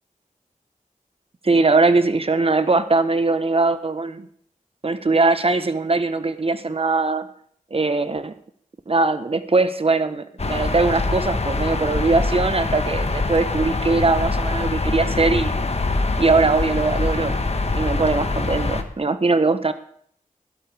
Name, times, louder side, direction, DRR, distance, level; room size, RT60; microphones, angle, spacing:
voice 1, 1.4-4.3 4.8-7.3 7.7-8.3 8.9-15.5 16.2-19.7, right 3 dB, 40° right, 11 dB, 1.1 m, -21 dB
sound 1, 10.4-18.8, left 3 dB, 50° left, 1.3 m, -24 dB
16.5 x 12.0 x 3.5 m, 0.62 s
cardioid pair, 50°, 14 cm